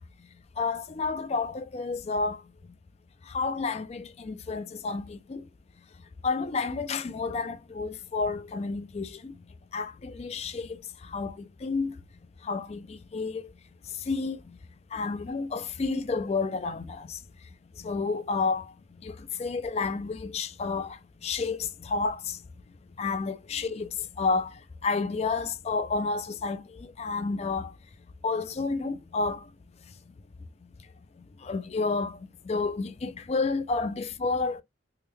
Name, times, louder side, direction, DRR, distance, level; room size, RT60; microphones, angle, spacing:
voice 1, 0.6-2.4 3.3-5.4 6.2-9.3 9.7-10.8 11.1-11.9 12.4-13.4 14.1-14.4 14.9-17.2 17.8-18.7 19.0-22.4 23.0-23.9 24.2-24.5 24.8-27.7 28.2-29.4 31.4-32.2 32.5-34.6, left 4 dB, 30° left, 0.3 m, -30 dB
3.4 x 2.2 x 3.0 m
head